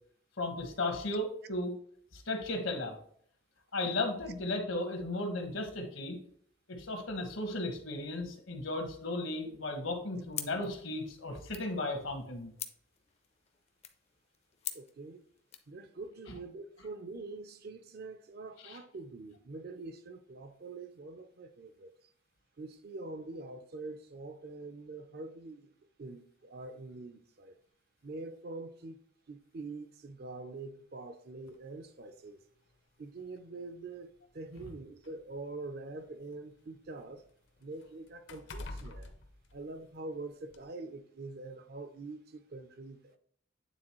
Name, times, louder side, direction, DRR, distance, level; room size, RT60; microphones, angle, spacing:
voice 1, 0.4-1.7 2.1-3.0 3.7-6.2 6.7-12.5 18.6-18.8, left 2 dB, 80° left, 1.4 m, -35 dB
sound 1, 10.3-15.7, left 9 dB, 30° left, 0.5 m, -46 dB
voice 2, 14.7-15.2 15.7-21.9 22.6-25.7 26.0-27.6 28.0-29.0 29.3-32.4 33.0-37.2 37.6-39.1 39.5-43.2, right 3 dB, 50° right, 0.5 m, -45 dB
sound 2, 31.5-31.6 32.7-32.8 33.2-33.4 34.3-36.3 36.7-40.1 40.5-40.6, left 2 dB, 65° left, 0.7 m, -48 dB
9.0 x 3.9 x 3.0 m
head